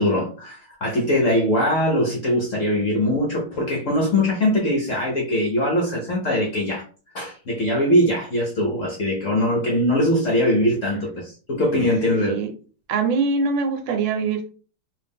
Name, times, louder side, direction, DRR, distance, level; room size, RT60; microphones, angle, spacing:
voice 1, 0.0-6.8 7.1-12.4, left 1 dB, 60° left, -1 dB, 0.8 m, -21 dB
voice 2, 12.2-12.5 12.9-14.5, right 4 dB, 75° right, 6 dB, 1.3 m, -23 dB
3.3 x 2.5 x 3.5 m, 0.38 s
omnidirectional pair, 2.2 m